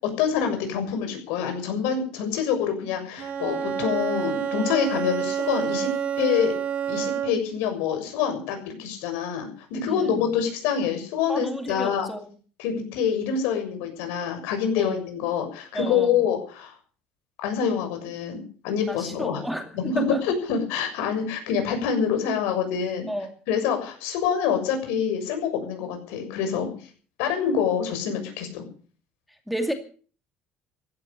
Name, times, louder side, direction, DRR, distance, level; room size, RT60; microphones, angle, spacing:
voice 1, 0.0-5.9 6.2-6.6 6.9-12.1 12.6-16.7 17.4-19.4 19.7-23.1 23.5-26.7 27.2-28.7, left 7 dB, 90° left, 6 dB, 6.9 m, -26 dB
Bowed string instrument, 3.2-7.6, right 8 dB, 45° right, 2.2 m, -28 dB
voice 2, 9.9-10.3 11.3-12.3 14.8-15.0 15.7-16.2 18.9-20.2 23.1-23.3 29.5-29.7, equal, ahead, 5 dB, 2.4 m, -31 dB
16.0 x 12.0 x 6.9 m, 0.42 s
cardioid pair, 150°, 3 cm